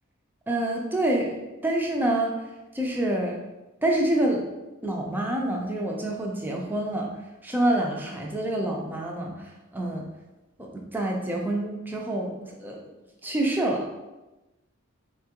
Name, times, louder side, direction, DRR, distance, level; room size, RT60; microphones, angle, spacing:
voice 1, 0.5-2.4 2.7-3.4 3.8-4.5 4.8-7.1 7.4-10.1 10.6-12.8 13.2-13.9, right 1 dB, 10° right, -1 dB, 0.4 m, -27 dB
4.2 x 2.3 x 2.8 m, 1.0 s
head